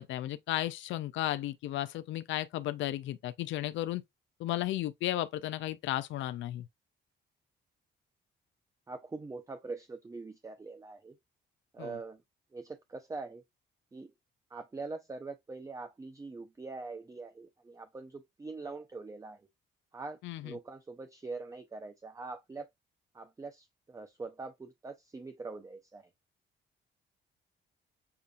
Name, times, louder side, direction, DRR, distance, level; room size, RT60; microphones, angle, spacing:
voice 1, 0.0-4.0 4.4-6.6 11.8-11.9 20.2-20.5, left 14 dB, 75° left, 0.4 m, -34 dB
voice 2, 8.9-11.2 11.7-12.2 12.5-13.4 13.9-14.1 14.5-19.5 19.9-22.7 23.1-26.1, right 3 dB, 15° right, 0.5 m, -43 dB
6.9 x 2.4 x 2.4 m
cardioid pair, 90°, 20 cm